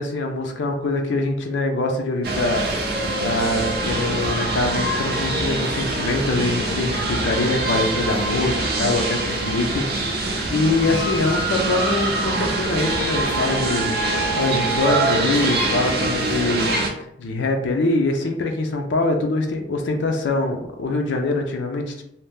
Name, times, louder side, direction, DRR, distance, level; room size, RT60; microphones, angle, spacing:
voice 1, 0.0-2.9 3.2-16.7 17.2-22.0, left 2 dB, 80° left, 3 dB, 0.5 m, -24 dB
sound 1, 2.2-16.9, right 2 dB, 55° right, 0.5 m, -24 dB
2.8 x 2.1 x 3.4 m, 0.74 s
head